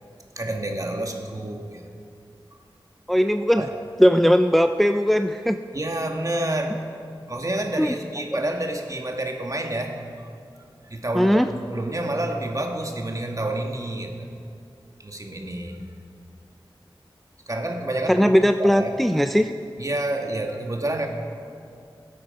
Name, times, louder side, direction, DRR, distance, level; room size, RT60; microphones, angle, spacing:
voice 1, 0.4-1.9 3.6-3.7 5.7-6.8 7.3-10.3 10.9-14.3 15.0-15.8 17.5-18.3 18.6-19.0 19.8-21.1, right 1 dB, 40° right, 3 dB, 1.4 m, -29 dB
voice 2, 3.1-3.7 4.0-5.6 7.8-8.0 8.3-8.4 11.1-11.5 18.1-19.5, equal, ahead, 8 dB, 0.4 m, -19 dB
17.5 x 8.5 x 5.2 m, 2.4 s
wide cardioid pair, 50°, 9 cm